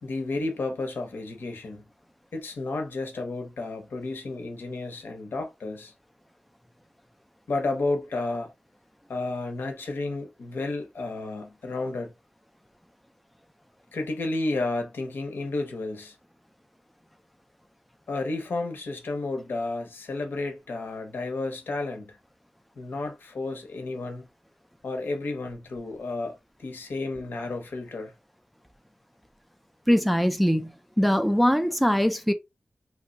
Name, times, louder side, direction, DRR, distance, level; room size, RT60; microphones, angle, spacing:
voice 1, 0.0-1.8 2.3-5.9 7.5-8.5 9.1-12.1 13.9-16.2 18.1-22.2 22.8-24.3 24.8-28.1, left 2 dB, 85° left, 0.9 m, -32 dB
voice 2, 29.9-32.3, equal, ahead, 0.4 m, -22 dB
2.7 x 2.3 x 3.9 m
wide cardioid pair, 95°, 3 cm